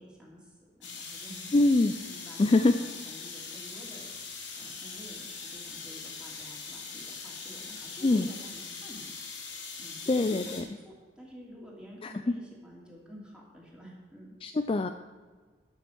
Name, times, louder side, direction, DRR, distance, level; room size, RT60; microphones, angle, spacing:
voice 1, 0.0-1.5 2.0-4.1 4.6-9.1 9.8-14.3, equal, 5° right, -4 dB, 2.9 m, -49 dB
sound 1, 0.8-10.6, left 5 dB, 80° left, 2.7 m, -42 dB
voice 2, 1.5-1.9 2.4-2.7 8.0-8.3 10.1-10.6 12.0-12.1 14.4-14.9, left 2 dB, 30° left, 8 dB, 0.4 m, -23 dB
11.5 x 7.0 x 6.3 m, 1.4 s
head